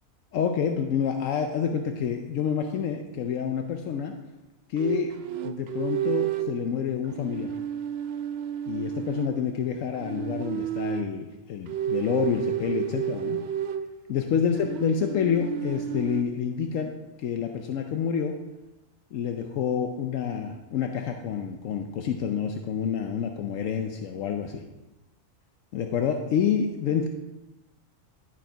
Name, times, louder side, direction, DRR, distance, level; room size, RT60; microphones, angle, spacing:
voice 1, 0.3-4.2 4.7-5.1 5.4-7.5 8.7-13.4 14.1-16.9 17.2-18.4 19.1-24.6 25.7-27.1, left 7 dB, 75° left, 4 dB, 1.0 m, -28 dB
sound 1, 4.8-6.6 7.1-9.4 10.0-11.2 11.7-13.9 14.6-16.2, right 10 dB, 60° right, 0.7 m, -31 dB
11.5 x 4.7 x 4.4 m, 1.0 s
omnidirectional pair, 1.4 m